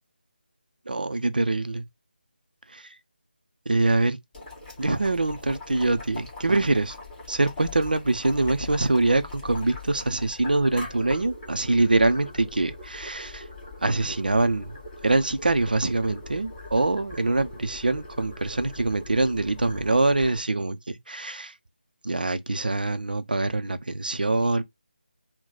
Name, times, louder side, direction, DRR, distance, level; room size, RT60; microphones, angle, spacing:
voice 1, 0.9-1.8 2.7-2.9 3.7-4.2 4.8-7.0 7.3-13.4 13.8-21.5 22.0-24.6, right 2 dB, 55° right, 0.5 m, -24 dB
Boiling, 4.3-20.4, left 3 dB, 5° left, 1.9 m, -41 dB
3.9 x 2.2 x 4.1 m
figure-of-eight pair, 160°, 6 cm